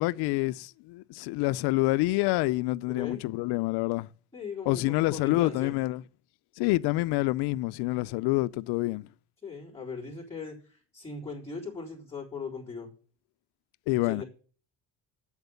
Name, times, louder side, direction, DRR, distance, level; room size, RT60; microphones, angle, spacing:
voice 1, 0.0-4.1 4.7-6.0 6.6-9.1 13.9-14.2, left 19 dB, 90° left, 0.5 m, -27 dB
voice 2, 2.9-3.2 4.3-5.7 9.4-12.9 14.0-14.2, left 4 dB, 5° left, 3.8 m, -39 dB
8.1 x 7.3 x 6.8 m
cardioid pair, 140°, 38 cm